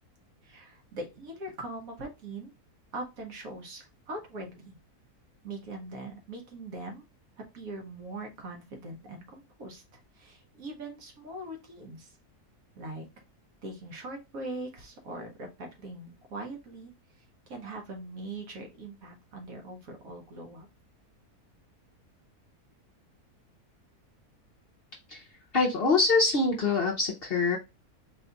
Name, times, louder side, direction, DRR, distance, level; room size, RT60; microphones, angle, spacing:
voice 1, 0.4-2.5 2.9-4.8 5.4-7.0 7.5-9.8 10.1-12.1 12.8-13.1 13.6-16.9 17.5-20.7, right 2 dB, 65° right, 2 dB, 1.5 m, -41 dB
voice 2, 25.5-27.6, left 3 dB, 50° left, -1 dB, 0.7 m, -24 dB
4.1 x 2.4 x 3.9 m, 0.25 s
omnidirectional pair, 1.6 m